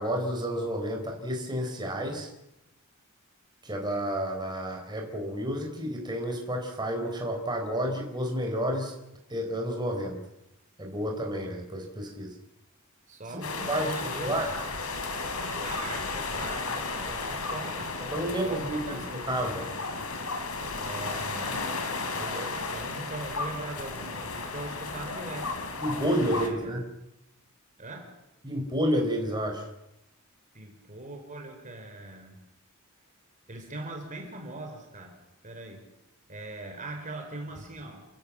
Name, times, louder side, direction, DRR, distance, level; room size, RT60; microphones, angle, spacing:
voice 1, 0.0-2.3 3.6-8.9 9.3-10.2 10.8-12.3 13.3-14.5 18.1-19.0 19.3-19.8 25.8-26.8 28.4-29.7, equal, 20° right, 1 dB, 4.3 m, -30 dB
voice 2, 13.1-14.3 15.6-17.9 18.2-19.1 20.8-21.8 22.2-25.6 26.3-26.8 27.8-28.1 30.5-32.4 33.5-35.2 35.4-35.8 36.3-38.1, right 2 dB, 35° right, 3 dB, 4.1 m, -41 dB
sound 1, 13.4-26.5, left 3 dB, 80° left, 3.5 m, -34 dB
29.5 x 15.5 x 7.5 m, 0.90 s
head